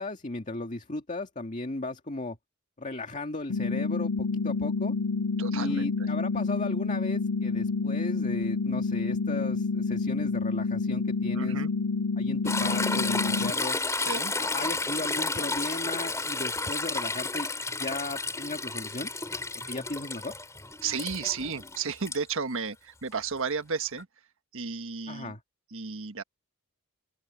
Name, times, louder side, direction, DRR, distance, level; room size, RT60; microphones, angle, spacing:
voice 1, 0.0-2.4 2.8-4.9 5.5-11.6 12.2-13.8 14.4-17.5 17.8-19.1 19.7-20.3 25.1-25.4, left 2 dB, 35° left, 2.1 m, -36 dB
sound 1, 3.5-13.5, left 4 dB, 85° left, 0.6 m, -28 dB
voice 2, 5.4-6.1 11.3-11.7 14.0-14.3 20.8-24.1 24.5-25.3 25.7-26.2, right 5 dB, 65° right, 1.5 m, -33 dB
Toilet flush / Trickle dribble, 12.4-22.2 24.0-24.1, left 3 dB, 15° left, 3.2 m, -32 dB
open air
head